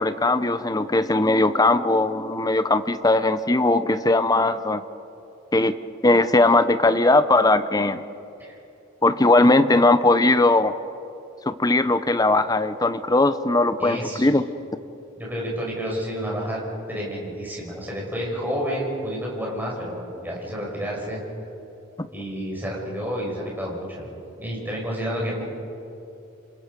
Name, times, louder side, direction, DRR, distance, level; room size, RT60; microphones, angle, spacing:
voice 1, 0.0-4.8 5.5-5.8 6.0-8.0 9.0-10.7 11.5-14.4, left 2 dB, 20° left, 11 dB, 0.8 m, -19 dB
voice 2, 13.8-14.3 15.2-16.6 16.9-21.2 22.1-25.4, equal, 10° right, -3 dB, 5.8 m, -30 dB
28.0 x 27.5 x 5.3 m, 2.8 s
head